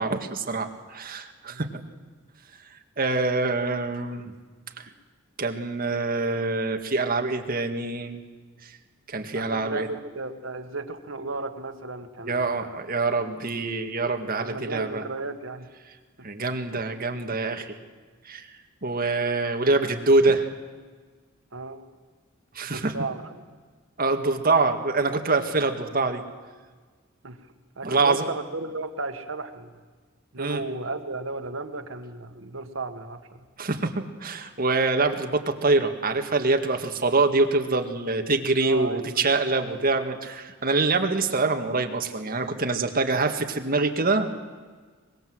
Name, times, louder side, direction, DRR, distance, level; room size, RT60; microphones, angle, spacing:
voice 1, 0.0-1.7 3.0-4.3 4.8-4.9 5.4-8.2 9.1-9.9 12.3-15.0 16.2-17.8 18.3-18.5 18.8-20.5 22.6-22.9 24.0-26.2 27.8-28.3 30.4-30.6 33.6-44.3, right 3 dB, 45° right, 5 dB, 1.9 m, -25 dB
voice 2, 9.3-12.8 14.4-15.7 21.5-21.9 22.6-23.4 27.2-27.4 27.8-29.8 30.3-33.4 38.6-39.2 39.6-39.8, right 3 dB, 75° right, 7 dB, 1.8 m, -34 dB
24.0 x 21.0 x 7.9 m, 1.4 s
head